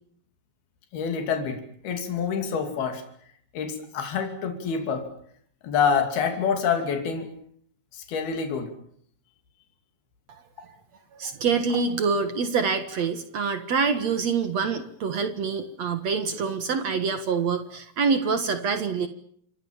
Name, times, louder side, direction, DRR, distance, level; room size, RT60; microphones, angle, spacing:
voice 1, 0.9-3.0 3.5-5.1 5.6-7.3 7.9-8.7, left 6 dB, 75° left, 5 dB, 4.7 m, -27 dB
voice 2, 11.1-19.1, right 5 dB, 55° right, 9 dB, 2.3 m, -26 dB
28.0 x 23.0 x 7.3 m, 0.64 s
omnidirectional pair, 4.4 m